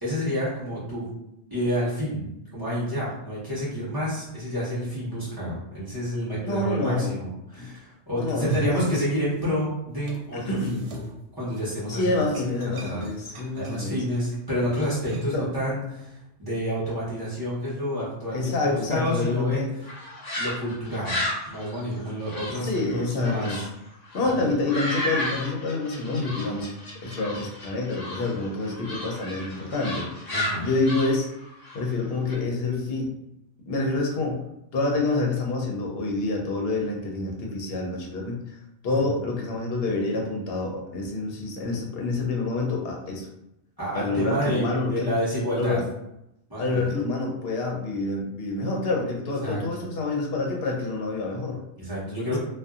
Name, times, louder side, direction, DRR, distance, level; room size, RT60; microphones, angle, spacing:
voice 1, 0.0-1.1 1.5-2.2 2.5-10.8 11.3-12.3 12.6-19.7 20.4-23.6 24.2-24.4 30.3-30.7 38.8-39.0 43.8-45.8 46.5-46.8 49.4-49.6 51.8-52.4, equal, 20° right, -10 dB, 1.0 m, -29 dB
voice 2, 6.4-7.1 7.6-7.7 8.1-9.0 10.3-10.8 11.9-14.0 15.3-15.5 18.3-19.7 22.6-23.6 24.1-26.7 27.0-31.3 31.7-33.1 33.6-34.4 34.7-38.6 38.8-43.3 43.9-45.1 45.6-45.8 46.6-51.6, left 3 dB, 60° left, 0 dB, 0.8 m, -27 dB
sound 1, 8.2-9.6 9.9-15.5, right 2 dB, 80° right, 1.0 m, -38 dB
sound 2, 19.8-23.7 24.0-32.3, left 1 dB, 35° left, 1.1 m, -34 dB
2.6 x 2.3 x 2.4 m, 0.85 s
omnidirectional pair, 1.2 m